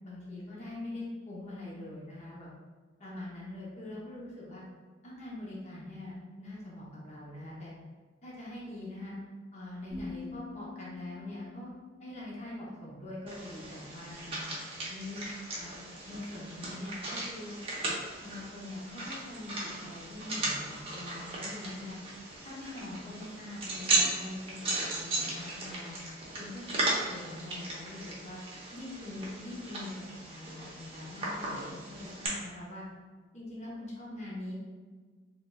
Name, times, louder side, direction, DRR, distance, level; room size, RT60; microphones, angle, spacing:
voice 1, 0.0-2.5 3.0-4.6 5.0-7.7 8.2-9.2 9.5-11.7 12.0-14.5 14.9-15.2 15.6-15.8 16.1-17.6 18.2-22.0 22.4-26.0 26.4-28.4 28.7-32.8 33.3-34.5, left 1 dB, 35° left, -6 dB, 0.8 m, -43 dB
sound 1, 9.9-13.8, left 4 dB, 15° left, 1.1 m, -47 dB
sound 2, 13.3-32.3, right 2 dB, 30° right, 0.8 m, -36 dB
3.8 x 3.7 x 2.2 m, 1.5 s
head